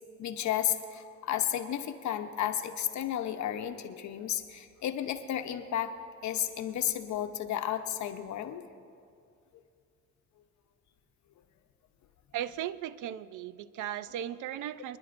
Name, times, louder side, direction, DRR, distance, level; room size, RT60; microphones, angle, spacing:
voice 1, 0.2-5.9 6.2-8.6, left 10 dB, 70° left, 8 dB, 0.9 m, -33 dB
voice 2, 12.3-15.0, right 11 dB, 80° right, 15 dB, 0.5 m, -37 dB
24.5 x 10.5 x 2.6 m, 2.3 s
cardioid pair, 90°, 30 cm